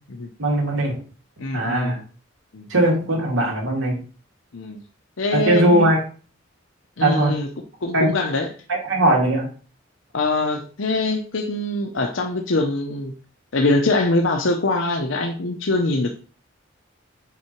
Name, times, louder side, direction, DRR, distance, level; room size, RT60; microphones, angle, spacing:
voice 1, 0.4-1.0 1.5-2.0 2.7-4.0 5.3-6.0 7.0-7.3 7.9-8.2 8.7-9.5, right 1 dB, 80° right, 2.5 m, -19 dB
voice 2, 1.4-2.0 2.5-2.7 4.5-4.8 5.2-5.9 7.0-7.5 7.8-8.5 10.1-13.1 13.5-16.2, left 2 dB, 70° left, 0.8 m, -23 dB
5.9 x 4.7 x 4.5 m
head